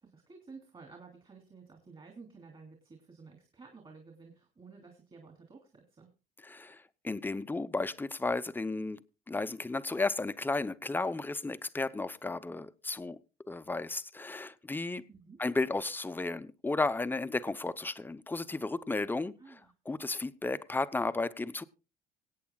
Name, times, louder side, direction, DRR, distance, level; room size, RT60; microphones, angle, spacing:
voice 1, 0.0-6.1 15.1-15.4 19.4-19.7, right 4 dB, 30° right, 2.9 m, -53 dB
voice 2, 6.4-13.2 13.5-15.0 15.4-21.6, left 3 dB, 10° left, 0.7 m, -34 dB
25.5 x 8.6 x 2.3 m
cardioid pair, 110°, 17 cm